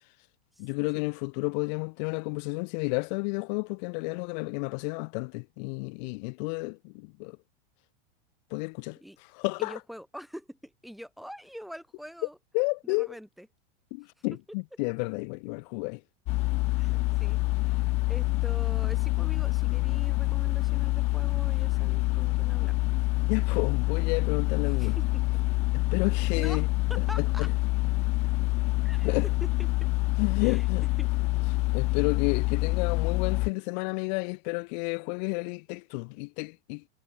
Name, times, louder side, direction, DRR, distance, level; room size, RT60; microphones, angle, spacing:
voice 1, 0.6-7.4 8.5-9.0 9.3-9.7 12.5-13.1 13.9-16.0 23.3-25.0 25.9-26.7 27.4-27.5 29.0-29.3 30.2-30.8 31.5-36.8, left 32 dB, 45° left, 5.9 m, -31 dB
voice 2, 9.6-12.4 12.8-13.5 16.7-22.7 24.7-25.2 26.4-26.6 26.9-27.5 28.8-29.1 29.4-29.9 30.4-30.7 31.0-31.5, equal, ahead, 5.9 m, -44 dB
sound 1, 16.3-33.5, left 22 dB, 20° left, 0.5 m, -26 dB
supercardioid pair, 170°, 32 cm